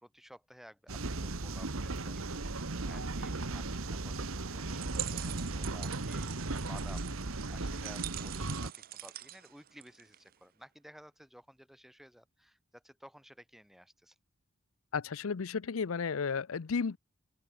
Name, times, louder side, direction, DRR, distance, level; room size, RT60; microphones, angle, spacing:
voice 1, 0.0-14.2, equal, ahead, 3.6 m, -55 dB
sound 1, 0.9-8.7, right 2 dB, 80° right, 1.4 m, -36 dB
sound 2, 4.7-10.3, right 15 dB, 45° right, 0.6 m, -44 dB
voice 2, 14.9-17.0, left 5 dB, 80° left, 0.6 m, -33 dB
open air
head